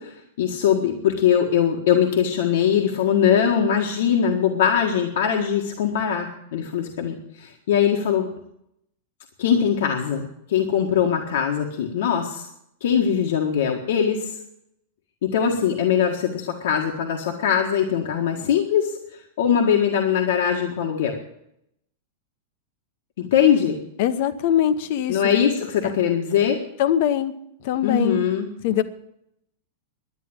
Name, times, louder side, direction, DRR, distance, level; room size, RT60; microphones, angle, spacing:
voice 1, 0.0-8.3 9.4-12.5 12.8-14.3 15.2-21.2 23.2-23.8 25.1-26.6 27.8-28.5, left 8 dB, 70° left, 1 dB, 1.7 m, -21 dB
voice 2, 24.0-25.2 26.8-27.3 27.6-28.3 28.6-28.8, left 10 dB, 50° left, 12 dB, 1.0 m, -22 dB
11.5 x 9.5 x 8.8 m, 0.77 s
supercardioid pair, 160°, 0 cm